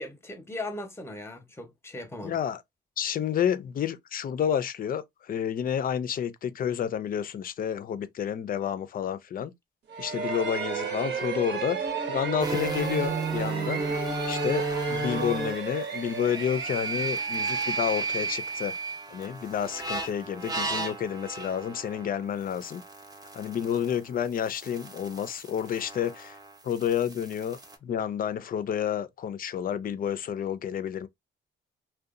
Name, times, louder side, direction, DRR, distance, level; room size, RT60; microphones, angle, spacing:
voice 1, 0.0-2.4, left 2 dB, 10° left, 0.8 m, -38 dB
voice 2, 2.2-2.6 3.0-9.5 10.0-11.8 12.1-13.8 14.3-18.8 19.1-22.8 23.3-26.4 26.6-31.1, left 9 dB, 45° left, 0.5 m, -30 dB
sound 1, 9.9-18.6, right 6 dB, 60° right, 0.9 m, -34 dB
sound 2, 12.4-24.0 24.2-27.7, right 3 dB, 20° right, 0.7 m, -34 dB
2.7 x 2.2 x 2.4 m
cardioid pair, 90°, 20 cm